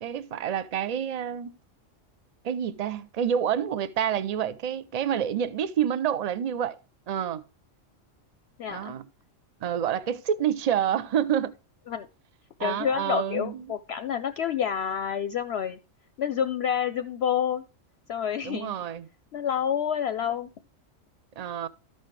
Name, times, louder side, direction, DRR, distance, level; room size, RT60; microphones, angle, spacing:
voice 1, 0.0-1.6 2.4-6.8 7.1-7.4 8.7-9.1 9.6-11.5 12.6-13.7 18.4-19.1 21.4-21.7, right 9 dB, 55° right, 0.4 m, -28 dB
voice 2, 8.6-8.9 11.9-12.1 12.6-15.8 16.2-17.7 18.1-18.7 19.3-20.5, left 8 dB, 65° left, 0.7 m, -28 dB
13.0 x 5.5 x 3.1 m
omnidirectional pair, 1.3 m